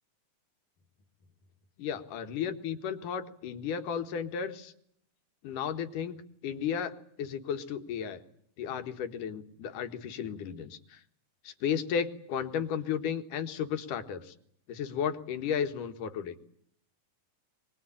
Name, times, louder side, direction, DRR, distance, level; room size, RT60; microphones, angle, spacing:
voice 1, 1.8-4.7 5.4-6.2 6.4-8.2 8.6-11.0 11.4-14.3 14.7-16.4, left 8 dB, 80° left, 8 dB, 3.1 m, -34 dB
24.0 x 20.5 x 10.0 m, 0.66 s
omnidirectional pair, 3.6 m